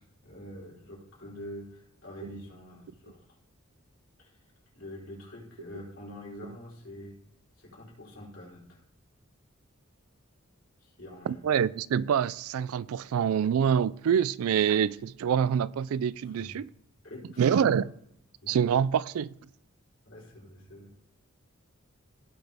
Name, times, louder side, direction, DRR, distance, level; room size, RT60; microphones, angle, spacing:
voice 1, 0.0-3.2 4.2-4.3 4.7-7.2 7.6-8.8 10.8-11.4 16.2-16.6 17.0-17.8 18.4-18.5 20.0-20.9, left 1 dB, 70° left, 4.2 m, -45 dB
voice 2, 11.3-16.7 17.4-17.8 18.5-19.3, right 8 dB, 80° right, 0.3 m, -26 dB
16.5 x 6.0 x 3.5 m
head